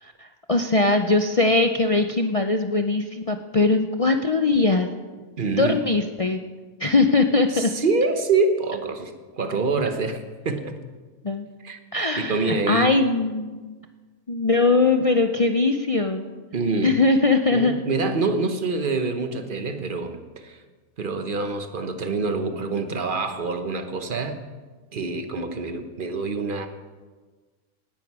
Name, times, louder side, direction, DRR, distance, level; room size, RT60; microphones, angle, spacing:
voice 1, 0.0-4.9 5.5-6.4 6.8-7.7 11.2-11.5 11.9-13.7 14.3-16.3 16.8-17.8, left 3 dB, 60° left, 5 dB, 0.3 m, -21 dB
voice 2, 5.4-5.8 7.5-10.7 11.6-13.0 16.5-16.9 17.5-20.6 21.0-24.4 24.9-26.7, right 3 dB, 40° right, 7 dB, 1.1 m, -26 dB
18.5 x 10.0 x 4.8 m, 1.3 s
omnidirectional pair, 1.5 m